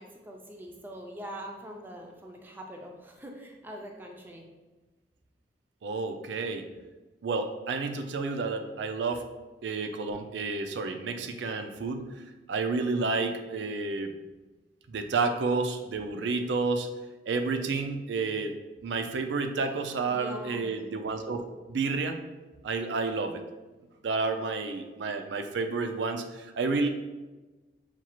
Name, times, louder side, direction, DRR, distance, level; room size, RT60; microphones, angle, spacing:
voice 1, 0.0-4.4 20.1-20.7, equal, 10° right, 1 dB, 0.5 m, -43 dB
voice 2, 5.8-6.7 7.2-9.2 9.6-12.2 12.5-14.2 14.9-16.9 17.3-18.5 18.8-21.4 21.7-22.2 22.6-23.4 24.0-26.9, right 4 dB, 80° right, 7 dB, 0.4 m, -30 dB
5.9 x 2.4 x 2.9 m, 1.2 s
head